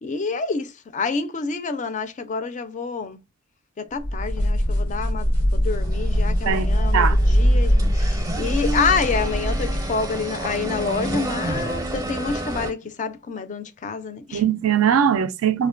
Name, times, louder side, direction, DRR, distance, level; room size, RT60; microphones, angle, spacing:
voice 1, 0.0-3.2 3.8-14.4, left 4 dB, 35° left, 0.3 m, -28 dB
sound 1, 4.0-10.0, equal, 85° left, 0.7 m, -21 dB
sound 2, 5.7-12.7, right 2 dB, 15° right, 0.5 m, -30 dB
voice 2, 6.5-7.2 14.3-15.7, right 8 dB, 75° right, 0.4 m, -21 dB
2.4 x 2.1 x 2.4 m
head